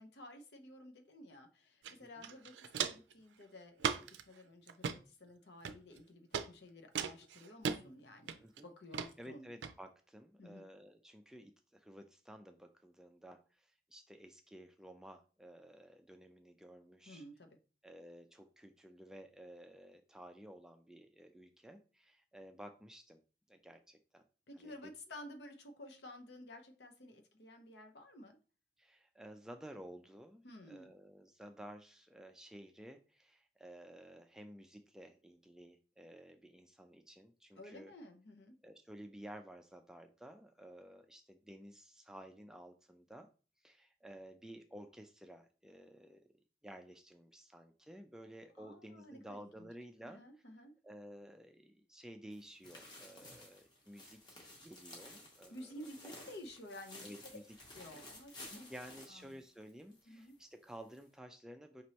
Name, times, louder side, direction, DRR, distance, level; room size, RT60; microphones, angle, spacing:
voice 1, 0.0-9.5 10.4-10.7 17.1-17.6 24.5-28.4 30.4-30.9 37.6-38.6 48.6-49.7 50.0-50.7 55.5-57.3 57.7-58.7 59.1-59.4 60.1-60.4, left 1 dB, 75° left, 5 dB, 0.8 m, -53 dB
Walk footsteps, 1.8-1.9 2.2-3.1 3.8-4.2 4.7-5.0 5.6-6.0 6.3-6.5 7.0-7.8 8.3-8.6 8.9-9.1 9.6-9.7, right 6 dB, 90° right, 0.4 m, -37 dB
voice 2, 9.2-17.2 17.8-23.2 23.5-24.2 24.6-24.9 28.8-37.9 38.6-43.3 43.6-46.2 46.6-50.2 50.8-55.7 56.0-56.1 57.0-57.4 58.4-61.8, equal, 5° right, 5 dB, 0.3 m, -54 dB
sound 1, 52.3-60.0 60.3-60.4 60.9-61.0, left 1 dB, 25° left, 0.9 m, -54 dB
5.2 x 3.1 x 2.8 m, 0.35 s
head